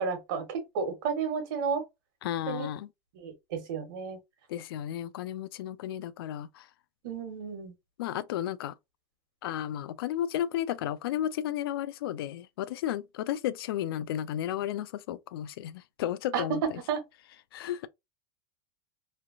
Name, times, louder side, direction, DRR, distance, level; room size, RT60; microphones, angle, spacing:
voice 1, 0.0-1.8 2.5-2.7 3.1-4.2 7.0-7.7 16.3-16.4 16.9-17.0, right 6 dB, 65° right, 1.3 m, -32 dB
voice 2, 2.2-2.9 4.5-6.7 8.0-8.7 9.4-16.8 17.5-17.9, left 11 dB, 90° left, 0.4 m, -33 dB
3.1 x 2.3 x 2.6 m
supercardioid pair, 160°, 12 cm